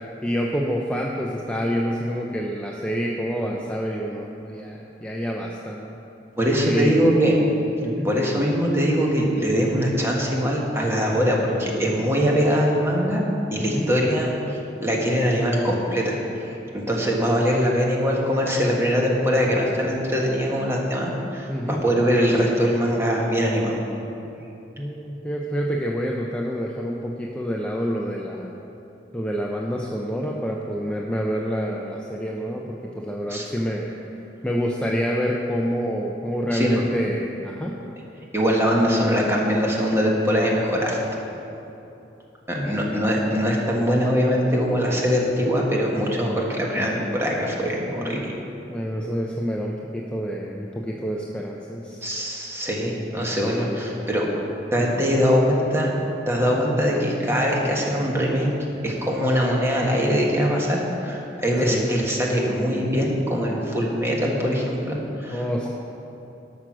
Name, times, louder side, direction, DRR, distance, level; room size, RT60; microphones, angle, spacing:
voice 1, 0.2-6.0 6.6-7.1 7.8-8.1 13.6-13.9 21.5-21.8 24.8-28.5 29.1-33.9 34.4-37.7 42.6-42.7 47.9-48.2 48.7-52.0 54.8-54.9 61.7-61.9 65.3-65.7, equal, 5° left, -2 dB, 0.6 m, -27 dB
voice 2, 6.4-7.4 8.0-13.2 13.5-23.8 33.3-33.4 36.5-36.8 38.3-41.0 42.5-48.3 52.0-54.3 54.7-55.9 56.3-58.5 58.8-65.7, equal, 15° right, -2 dB, 1.5 m, -22 dB
12.5 x 6.2 x 6.1 m, 2.9 s
head